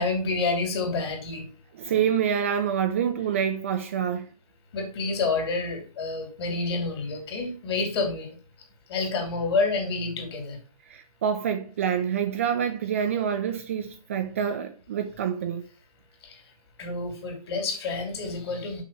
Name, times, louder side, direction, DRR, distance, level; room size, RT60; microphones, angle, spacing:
voice 1, 0.0-1.5 4.7-8.4 8.9-10.6 16.8-18.8, left 3 dB, 40° left, 3.0 m, -28 dB
voice 2, 1.7-4.3 10.9-15.6, right 8 dB, 20° right, 0.4 m, -27 dB
6.1 x 5.8 x 5.7 m
hypercardioid pair, 155°, 20 cm